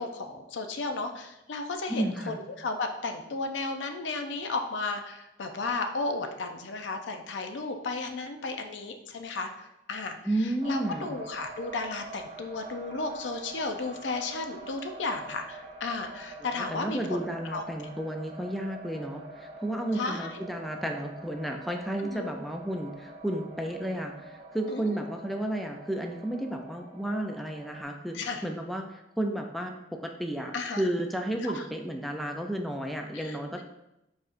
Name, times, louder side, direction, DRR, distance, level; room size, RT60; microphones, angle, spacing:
voice 1, 0.0-10.2 10.4-17.0 17.5-17.6 19.9-20.4 22.0-22.3 24.7-25.1 28.1-28.4 30.5-30.9 31.4-31.6 33.1-33.6, left 3 dB, 90° left, 5 dB, 0.5 m, -34 dB
voice 2, 1.9-2.4 10.2-11.1 16.7-28.2 28.4-30.5 30.8-33.6, right 1 dB, ahead, 2 dB, 0.4 m, -32 dB
sound 1, 10.6-27.8, right 2 dB, 35° right, 0.7 m, -45 dB
4.6 x 4.3 x 2.5 m, 0.89 s
head